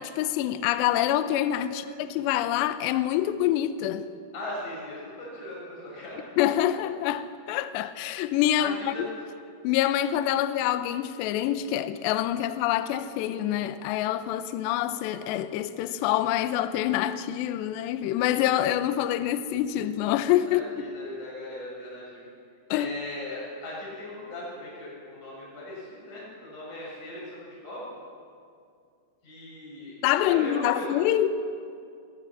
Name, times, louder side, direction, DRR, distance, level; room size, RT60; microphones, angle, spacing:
voice 1, 0.0-4.1 6.4-9.1 9.6-20.6 22.7-22.9 30.0-31.4, left 12 dB, 80° left, 2.8 m, -26 dB
voice 2, 4.3-6.2 6.7-6.8 8.6-9.1 20.5-22.3 22.7-27.9 29.2-29.9 30.2-30.9, left 1 dB, 40° left, 8.3 m, -39 dB
21.5 x 20.5 x 7.4 m
omnidirectional pair, 5.2 m